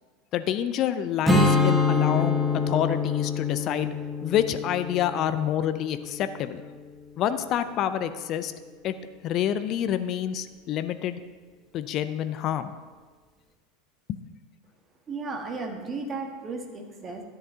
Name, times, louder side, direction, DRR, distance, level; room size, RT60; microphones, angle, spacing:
voice 1, 0.3-3.9 4.2-6.6 7.2-8.5 8.8-8.9 9.2-11.2 11.7-12.7 14.1-14.2, left 10 dB, 45° left, 12 dB, 0.5 m, -27 dB
Strum, 1.3-6.6, left 3 dB, 5° right, 1.4 m, -25 dB
voice 2, 15.1-17.2, right 3 dB, 30° right, 3 dB, 1.6 m, -34 dB
13.0 x 10.0 x 2.8 m, 1.4 s
figure-of-eight pair, 80°, 0 cm